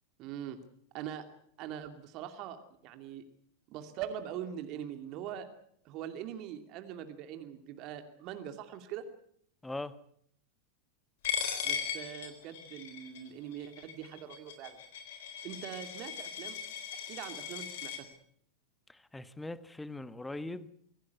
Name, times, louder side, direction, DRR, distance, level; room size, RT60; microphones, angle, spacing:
voice 1, 0.2-0.6 0.9-1.2 1.6-3.2 3.7-5.5 5.8-9.0 11.6-14.8 15.4-16.6 16.9-18.1, right 10 dB, 40° right, 2.6 m, -42 dB
voice 2, 9.6-9.9 18.9-20.7, left 2 dB, 5° left, 1.3 m, -41 dB
Coin (dropping), 11.2-18.0, left 7 dB, 55° left, 3.8 m, -38 dB
25.5 x 17.0 x 8.2 m
figure-of-eight pair, 90°, 0 cm